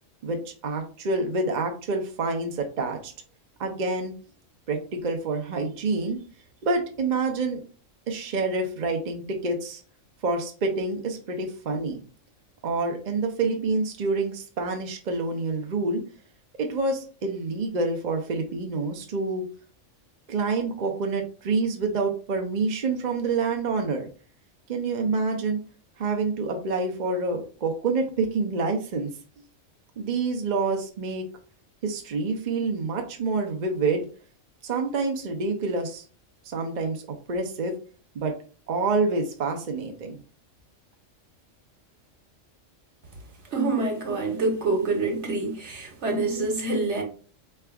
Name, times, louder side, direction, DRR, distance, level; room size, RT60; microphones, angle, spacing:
voice 1, 0.2-3.1 3.6-4.1 4.7-6.2 6.6-7.6 8.1-9.8 10.2-12.0 12.6-16.0 16.6-19.4 20.3-24.1 24.7-25.6 26.0-29.1 30.0-31.2 31.8-34.1 34.6-36.0 36.4-37.7 38.1-38.3 38.7-40.2, right 3 dB, 45° right, 3 dB, 0.6 m, -27 dB
voice 2, 43.5-47.0, right 3 dB, 65° right, 2 dB, 1.3 m, -26 dB
4.6 x 3.4 x 2.3 m, 0.39 s
omnidirectional pair, 1.3 m